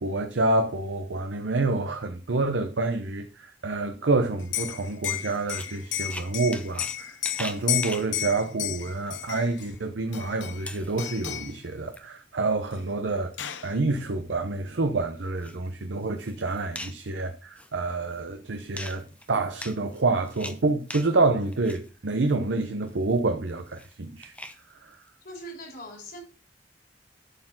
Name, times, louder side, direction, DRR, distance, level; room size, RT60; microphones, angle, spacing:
voice 1, 0.0-24.3, right 3 dB, 75° right, 0.7 m, -28 dB
Liquid, 4.4-9.7 10.1-10.7 11.0-11.6 12.7-12.8 13.1-13.7, left 12 dB, 85° left, 0.8 m, -32 dB
sound 1, 5.3-7.0 7.2-8.1 9.1-9.2 9.6-9.7 10.1-10.2 10.5-11.3 11.6-12.0 12.8-13.4 13.9-14.0 14.3-14.4 15.2-15.7 16.0-17.1 17.5-18.2 18.7-21.1 21.4-21.9 22.3-24.6, left 1 dB, 10° left, 0.9 m, -41 dB
voice 2, 25.2-26.2, equal, 60° left, 3.2 m, -41 dB
11.5 x 4.4 x 5.8 m
head